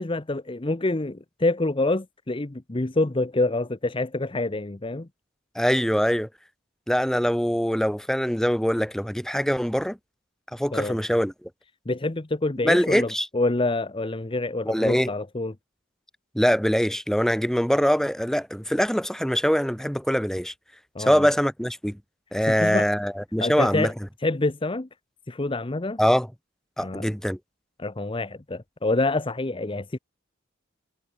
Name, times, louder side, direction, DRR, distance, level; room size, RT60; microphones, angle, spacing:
voice 1, 0.0-5.1 10.7-11.0 11.9-15.5 20.9-21.3 22.5-22.9 23.4-23.9 24.2-24.9 25.3-26.0 26.8-27.1 27.8-30.0, left 2 dB, 25° left, 0.8 m, -27 dB
voice 2, 5.6-6.3 6.9-10.0 10.5-11.5 12.6-13.3 14.6-15.1 16.3-20.5 21.0-22.0 22.3-23.9 26.0-26.3 26.8-27.4, equal, ahead, 2.3 m, -23 dB
head